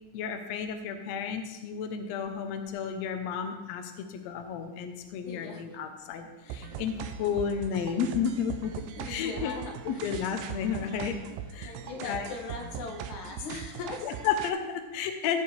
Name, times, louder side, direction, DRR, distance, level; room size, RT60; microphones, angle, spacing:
voice 1, 0.1-9.5 9.8-11.2 11.5-12.3 14.0-15.4, left 7 dB, 85° left, 6 dB, 1.5 m, -32 dB
voice 2, 5.2-5.7 6.4-6.8 9.0-10.2 11.6-14.1, left 4 dB, 65° left, 2 dB, 2.4 m, -40 dB
sound 1, 6.5-14.5, right 8 dB, 90° right, 2.4 m, -40 dB
15.5 x 7.0 x 3.2 m, 1.1 s
omnidirectional pair, 4.0 m